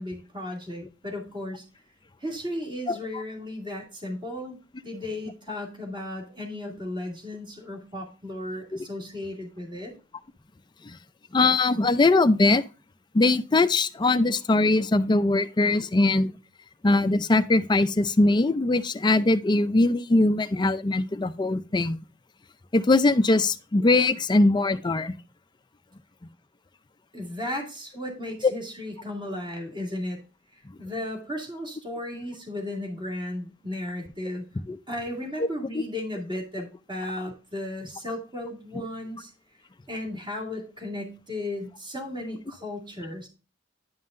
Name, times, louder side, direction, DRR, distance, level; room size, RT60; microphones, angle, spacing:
voice 1, 0.0-1.6 2.2-4.6 4.8-9.9 27.1-30.2 30.8-34.4 34.9-39.3 39.9-43.3, left 1 dB, 25° right, 2.4 m, -35 dB
voice 2, 2.9-3.2 8.7-8.8 10.9-11.0 11.3-12.6 13.1-16.3 16.8-22.0 22.7-25.1 28.4-28.5 34.7-34.8 35.4-35.5 35.7-35.8, left 2 dB, 25° left, 0.4 m, -21 dB
10.5 x 5.5 x 2.5 m
head